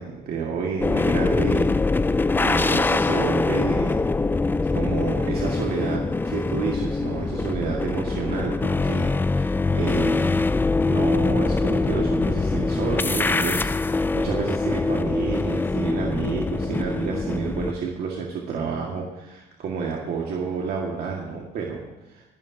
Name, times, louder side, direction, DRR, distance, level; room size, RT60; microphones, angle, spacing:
voice 1, 0.0-1.7 2.0-4.0 4.7-10.4 10.9-22.3, right 5 dB, 65° right, -1 dB, 1.9 m, -30 dB
sound 1, 0.8-17.7, left 3 dB, 10° left, 0.3 m, -23 dB
26.0 x 12.0 x 2.8 m, 1.1 s
cardioid pair, 110°, 17 cm